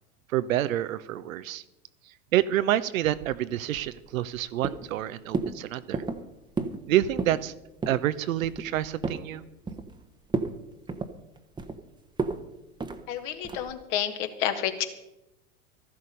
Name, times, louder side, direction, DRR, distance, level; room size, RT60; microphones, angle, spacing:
voice 1, 0.3-1.6 2.3-6.0 6.9-7.5 7.9-9.4, right 13 dB, 65° right, 15 dB, 0.8 m, -27 dB
sound 1, 3.7-4.4 4.6-5.0 5.3-5.6 5.9-6.2 6.6-6.8 7.1-7.4 7.8-8.0 8.4-9.3 9.7-10.0 10.3-10.5 10.9-11.8 12.2-12.4 12.8-13.0 13.4-13.7, right 4 dB, 10° right, 1.0 m, -31 dB
voice 2, 13.1-14.9, left 10 dB, 50° left, 7 dB, 1.9 m, -30 dB
14.0 x 11.5 x 5.4 m, 0.94 s
figure-of-eight pair, 90°, 45 cm